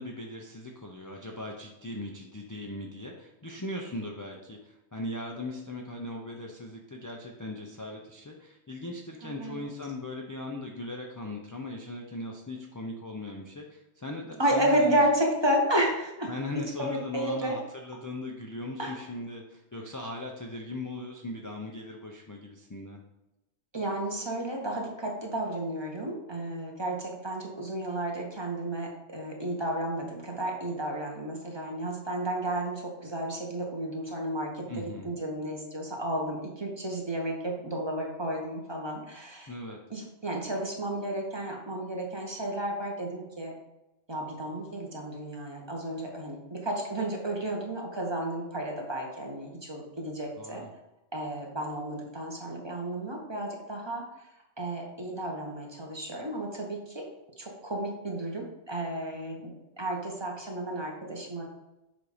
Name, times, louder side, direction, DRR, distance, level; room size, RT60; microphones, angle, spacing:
voice 1, 0.0-15.0 16.3-23.0 34.7-35.1 39.5-39.8 50.4-50.7, left 2 dB, 30° left, 0 dB, 0.4 m, -39 dB
voice 2, 9.2-9.6 14.4-16.3 16.8-17.6 18.8-18.9 23.7-39.5 39.9-43.5 44.1-50.6 51.1-54.3 54.6-57.0 57.4-59.5 59.8-61.4, right 1 dB, 25° right, -1 dB, 1.0 m, -32 dB
7.3 x 2.6 x 4.9 m, 0.94 s
omnidirectional pair, 1.2 m